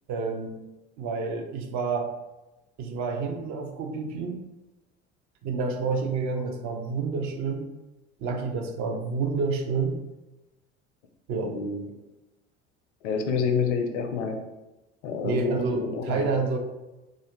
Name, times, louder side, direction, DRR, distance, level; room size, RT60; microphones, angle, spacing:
voice 1, 0.1-0.6 1.0-2.1 2.8-4.4 5.4-7.7 8.2-10.0 11.3-11.6 15.2-16.6, right 4 dB, 50° right, 4 dB, 0.5 m, -29 dB
voice 2, 11.4-11.9 13.0-14.4 15.0-16.3, left 5 dB, 75° left, 5 dB, 0.5 m, -28 dB
2.4 x 2.4 x 3.3 m, 1.0 s
figure-of-eight pair, 60°, 36 cm